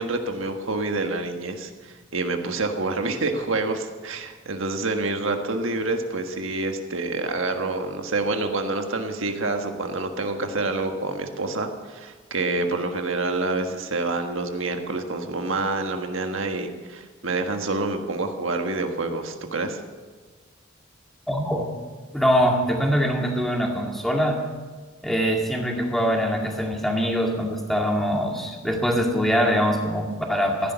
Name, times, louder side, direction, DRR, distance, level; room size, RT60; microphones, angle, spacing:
voice 1, 0.0-19.8, right 3 dB, 70° right, 5 dB, 1.5 m, -27 dB
voice 2, 21.3-21.7 22.1-24.4 25.0-30.7, equal, ahead, 0 dB, 2.0 m, -23 dB
15.5 x 10.5 x 6.9 m, 1.4 s
head